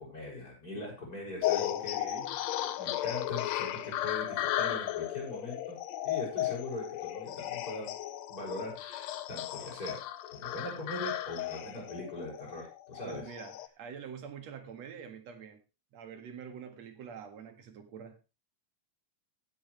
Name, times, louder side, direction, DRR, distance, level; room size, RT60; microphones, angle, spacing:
voice 1, 0.0-2.0 2.6-5.8 6.0-7.9 8.3-10.0 10.3-13.2, left 2 dB, 30° left, -3 dB, 7.0 m, -41 dB
sound 1, 1.4-13.7, left 13 dB, 75° left, 1.9 m, -35 dB
voice 2, 1.7-2.4 13.0-15.6 15.9-18.2, right 7 dB, 65° right, 6 dB, 2.9 m, -46 dB
16.0 x 8.9 x 3.3 m, 0.29 s
omnidirectional pair, 3.4 m